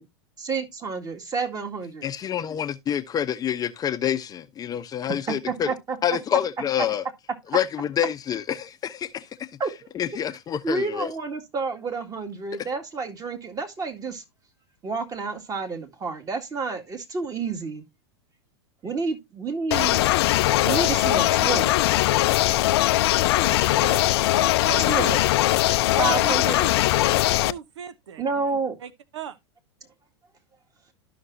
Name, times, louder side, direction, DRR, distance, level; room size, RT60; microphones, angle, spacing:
voice 1, 0.4-2.1 5.3-5.4 5.7-6.0 9.6-9.7 10.6-14.2 14.8-17.8 18.8-20.1 20.6-21.7 24.9-25.2 26.0-26.6 28.2-28.8, right 4 dB, 25° right, 2.1 m, -29 dB
voice 2, 2.0-5.7 6.0-7.0 7.5-9.3 9.9-11.1, left 9 dB, 25° left, 0.7 m, -27 dB
sound 1, 19.7-27.5, left 16 dB, 60° left, 0.5 m, -20 dB
voice 3, 23.3-25.2 25.9-26.7 27.4-28.4 28.8-29.4, right 8 dB, 75° right, 0.8 m, -39 dB
12.5 x 6.0 x 2.7 m
hypercardioid pair, 105°, 15 cm